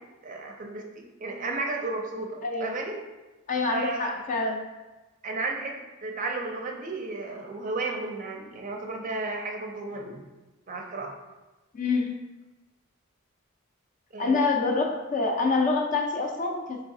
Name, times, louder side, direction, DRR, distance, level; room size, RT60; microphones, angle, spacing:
voice 1, 0.0-3.0 3.7-4.2 5.2-10.3 10.7-11.2 14.1-14.4, right 3 dB, 40° right, 2 dB, 0.5 m, -33 dB
voice 2, 3.5-4.6 11.7-12.1 14.2-16.8, left 3 dB, 40° left, 2 dB, 0.5 m, -26 dB
4.7 x 3.2 x 2.6 m, 1.1 s
head